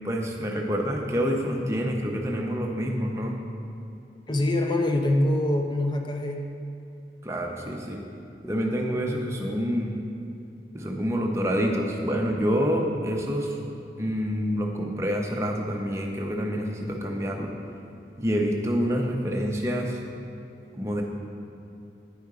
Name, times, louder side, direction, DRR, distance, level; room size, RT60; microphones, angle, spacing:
voice 1, 0.0-3.3 7.2-8.0 8.4-9.9 10.7-13.5 14.0-17.5 18.2-20.0 20.8-21.0, equal, 15° right, 0 dB, 0.7 m, -27 dB
voice 2, 4.3-6.5, left 1 dB, 25° left, 3 dB, 0.6 m, -24 dB
9.5 x 5.3 x 4.8 m, 2.7 s
head